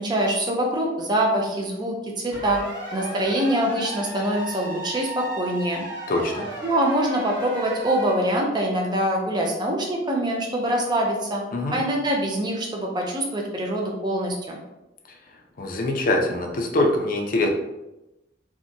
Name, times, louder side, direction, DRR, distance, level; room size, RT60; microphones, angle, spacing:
voice 1, 0.0-2.6 2.9-5.8 6.6-11.4 11.7-14.6, right 1 dB, 25° right, 0 dB, 0.4 m, -24 dB
sound 1, 2.3-8.1, right 1 dB, 65° right, 1.1 m, -35 dB
voice 2, 6.1-6.5 11.5-11.8 15.6-17.5, left 2 dB, 45° left, 2 dB, 0.4 m, -23 dB
2.8 x 2.1 x 2.5 m, 0.95 s
head